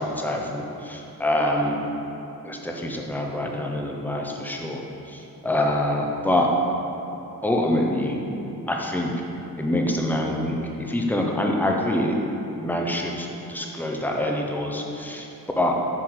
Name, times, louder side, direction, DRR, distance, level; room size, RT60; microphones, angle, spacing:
voice 1, 0.0-1.8 2.4-4.8 5.4-6.5 7.4-8.2 8.7-9.1 9.6-12.1 12.6-15.3 15.6-15.7, left 1 dB, 5° left, 0 dB, 0.7 m, -25 dB
7.4 x 6.9 x 4.6 m, 3.0 s
wide cardioid pair, 160°, 37 cm